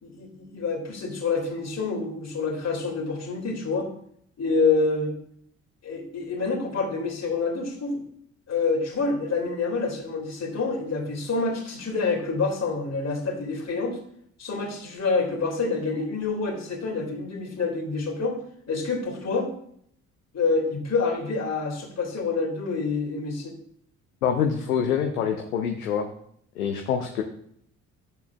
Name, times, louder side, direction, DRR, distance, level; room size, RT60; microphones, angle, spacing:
voice 1, 0.0-3.9 4.4-5.2 5.8-8.0 8.5-14.0 14.4-18.4 18.7-19.5 20.3-23.5, left 4 dB, 35° left, 1 dB, 2.5 m, -27 dB
voice 2, 24.2-26.1 26.6-27.2, left 7 dB, 80° left, 4 dB, 0.7 m, -25 dB
11.5 x 6.9 x 2.4 m, 0.67 s
figure-of-eight pair, 45°, 42 cm